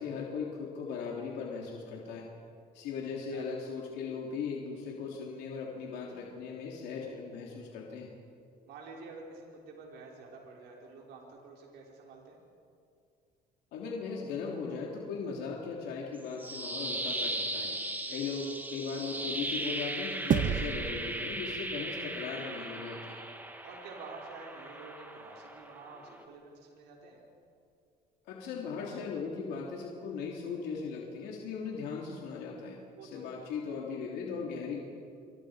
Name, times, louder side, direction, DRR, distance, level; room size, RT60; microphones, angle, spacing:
voice 1, 0.0-2.3 2.7-8.1 13.7-17.7 18.1-23.2 28.3-34.8, left 5 dB, 85° left, -2 dB, 3.3 m, -38 dB
voice 2, 8.7-12.4 18.0-18.3 23.6-27.2 33.0-33.3, right 3 dB, 85° right, -2 dB, 5.3 m, -49 dB
sound 1, 16.2-26.2, right 1 dB, 10° right, 2.5 m, -38 dB
sound 2, 20.3-22.9, right 9 dB, 50° right, 0.9 m, -33 dB
27.5 x 26.5 x 5.1 m, 2.4 s
cardioid pair, 110°, 17 cm